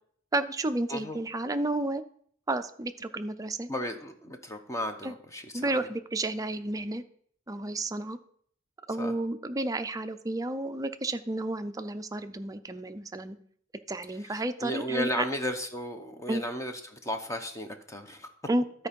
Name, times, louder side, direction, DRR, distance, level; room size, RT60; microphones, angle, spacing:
voice 1, 0.3-2.0 2.5-3.7 5.0-5.1 5.5-7.0 7.5-8.2 8.9-13.4 13.9-15.2 16.3-16.4 18.5-18.9, right 2 dB, 20° right, 9 dB, 0.5 m, -31 dB
voice 2, 3.7-5.7 9.0-9.1 14.3-18.3, equal, 15° left, 6 dB, 0.9 m, -34 dB
12.5 x 4.5 x 5.2 m, 0.62 s
head